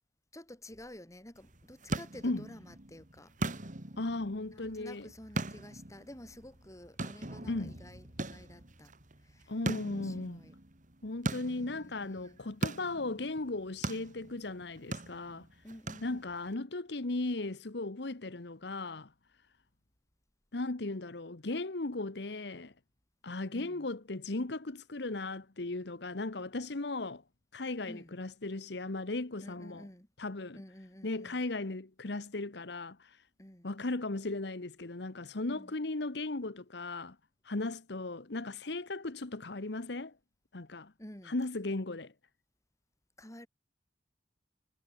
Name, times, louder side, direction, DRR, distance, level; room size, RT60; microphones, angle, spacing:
voice 1, 0.3-3.3 4.5-8.9 9.2-9.6 9.9-10.5 11.4-12.4 15.6-16.3 23.5-23.9 27.9-28.1 29.4-30.1 30.5-31.4 33.4-33.7 35.5-35.8 41.0-41.3 43.2-43.5, left 1 dB, 20° left, 4.1 m, -51 dB
sound 1, 1.4-16.5, right 2 dB, 45° right, 2.7 m, -41 dB
voice 2, 4.0-5.1 7.5-7.8 9.5-10.4 11.0-15.5 16.0-19.1 20.5-22.7 23.2-27.2 27.5-29.9 30.2-30.6 31.0-33.2 33.6-37.2 37.4-40.1 40.5-40.9 41.2-42.1, left 2 dB, 65° left, 1.2 m, -37 dB
head